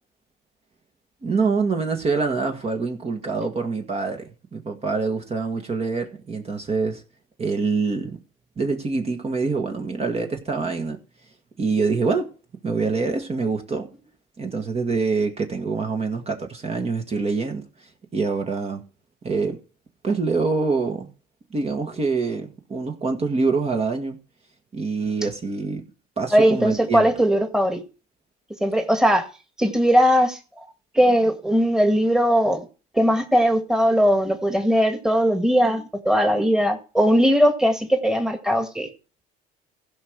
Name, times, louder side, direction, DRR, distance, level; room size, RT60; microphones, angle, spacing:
voice 1, 1.2-7.0 7.4-8.2 8.6-11.0 11.6-12.3 12.6-13.9 14.4-17.7 18.1-18.8 19.2-19.6 20.0-21.1 21.5-24.2 24.7-25.8 26.2-27.1, right 4 dB, 30° right, 1.8 m, -25 dB
voice 2, 26.3-27.8 28.6-29.2 29.6-30.4 30.9-32.7 32.9-38.9, equal, 5° right, 1.9 m, -19 dB
15.5 x 5.4 x 4.8 m
supercardioid pair, 85°, 20 cm